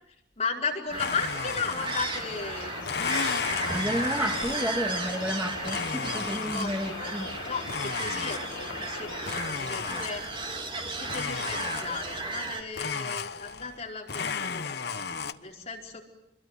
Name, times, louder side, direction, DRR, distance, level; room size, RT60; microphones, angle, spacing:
voice 1, 0.1-2.8 5.7-5.8 6.5-7.2 7.5-10.2 10.8-16.0, left 4 dB, 35° left, 0 dB, 4.8 m, -36 dB
sound 1, 0.9-12.6, right 3 dB, 25° right, 3.3 m, -35 dB
Domestic sounds home sounds, 1.0-2.4 2.8-4.9 5.6-7.0 7.7-8.8 9.3-10.5 11.1-12.2 12.7-13.8 14.1-15.3, left 5 dB, 60° left, 1.1 m, -34 dB
sound 2, 2.1-9.3, left 5 dB, 80° left, 1.4 m, -40 dB
voice 2, 3.6-7.3, equal, 10° right, 4 dB, 1.7 m, -31 dB
27.0 x 22.5 x 9.7 m, 0.86 s
head